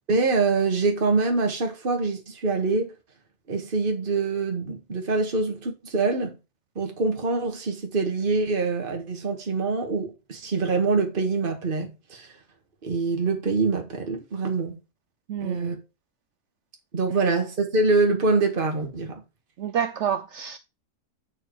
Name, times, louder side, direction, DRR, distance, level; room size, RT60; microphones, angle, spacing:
voice 1, 0.1-2.9 3.5-6.4 6.8-12.3 12.8-14.8 15.4-15.8 16.9-19.2, right 3 dB, 35° right, 1.8 m, -25 dB
voice 2, 15.3-15.8 17.2-17.4 19.6-20.6, right 8 dB, 80° right, 0.6 m, -29 dB
8.7 x 4.6 x 4.7 m
omnidirectional pair, 1.8 m